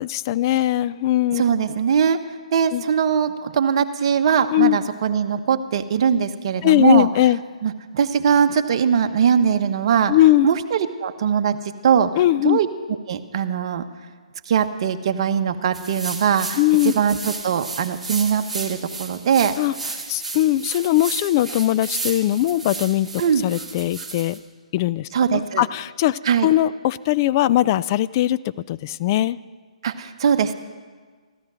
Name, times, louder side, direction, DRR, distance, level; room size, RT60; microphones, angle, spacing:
voice 1, 0.0-1.4 2.7-2.8 4.5-4.8 6.6-7.4 10.1-10.5 12.2-12.6 16.6-16.9 19.6-19.7 20.1-23.1 23.4-24.4 24.7-28.4 28.7-29.4, left 14 dB, 30° left, 17 dB, 0.4 m, -20 dB
voice 2, 1.3-2.2 2.5-7.1 7.6-10.1 10.4-11.6 11.8-12.1 12.4-12.7 13.1-13.8 14.5-16.6 16.9-19.5 23.2-23.4 25.1-25.6 26.2-26.5 29.8-30.5, right 7 dB, 45° right, 8 dB, 1.0 m, -21 dB
sound 1, 15.7-24.4, right 3 dB, ahead, 1.8 m, -33 dB
15.0 x 13.0 x 6.2 m, 1.5 s
figure-of-eight pair, 140°, 4 cm